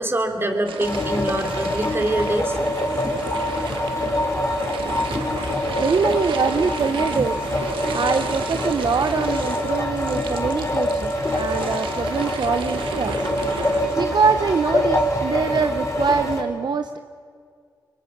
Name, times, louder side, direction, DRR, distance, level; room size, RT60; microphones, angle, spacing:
voice 1, 0.0-2.5, right 1 dB, 30° right, 4 dB, 3.4 m, -24 dB
sound 1, 0.7-13.9, right 6 dB, 85° right, 1.4 m, -34 dB
sound 2, 0.8-16.4, left 1 dB, 35° left, 5.1 m, -25 dB
voice 2, 5.8-13.5 14.0-17.0, right 5 dB, 55° right, 8 dB, 0.8 m, -24 dB
25.0 x 23.5 x 6.0 m, 2.1 s
cardioid pair, 50°, 9 cm